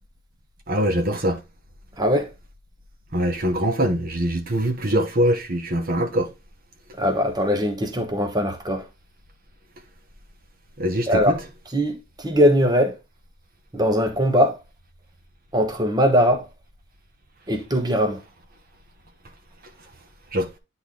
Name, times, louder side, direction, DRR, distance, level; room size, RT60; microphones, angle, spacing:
voice 1, 0.7-1.4 3.1-6.3 10.8-11.3 20.3-20.5, equal, 45° right, 1.2 m, -23 dB
voice 2, 2.0-2.3 7.0-8.8 11.1-11.4 11.7-12.9 13.7-14.5 15.5-16.4 17.5-18.2, equal, 20° right, 1.2 m, -20 dB
10.0 x 4.0 x 3.8 m
head